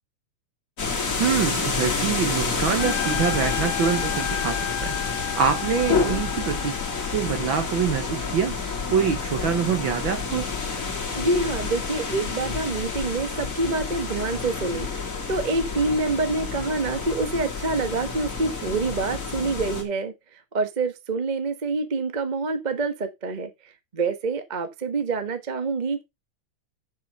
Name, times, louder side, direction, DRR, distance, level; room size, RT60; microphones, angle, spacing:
sound 1, 0.8-19.8, left 4 dB, 30° left, 2.4 m, -29 dB
voice 1, 1.2-4.9 5.3-6.7 7.1-8.5 8.9-10.5, right 7 dB, 60° right, 1.4 m, -25 dB
Trumpet, 2.8-7.5, left 13 dB, 85° left, 2.3 m, -33 dB
voice 2, 11.2-14.9 15.3-23.5 23.9-26.0, right 3 dB, 35° right, 0.7 m, -26 dB
7.5 x 6.9 x 5.4 m
omnidirectional pair, 3.3 m